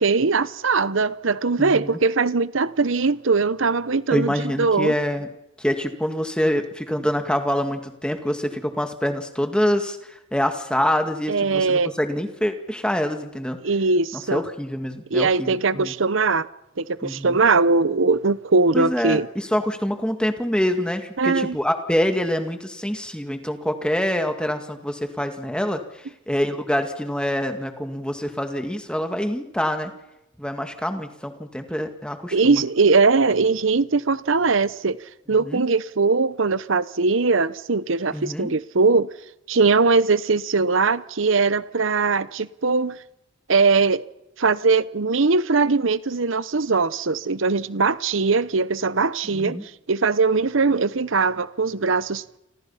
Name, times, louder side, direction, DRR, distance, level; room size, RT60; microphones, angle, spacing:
voice 1, 0.0-4.9 11.3-11.9 13.6-14.4 15.1-16.5 16.8-19.3 21.2-21.6 32.3-35.0 35.3-39.1 39.5-43.0 43.5-44.0 44.4-49.6 49.9-52.4, right 4 dB, 65° right, 0.8 m, -20 dB
voice 2, 1.6-2.0 4.1-5.3 5.6-13.6 14.3-15.9 17.0-17.4 18.7-29.9 30.4-32.6 35.4-35.6 38.1-38.6 49.3-49.6, equal, 5° left, 2.0 m, -25 dB
29.5 x 25.5 x 5.7 m
head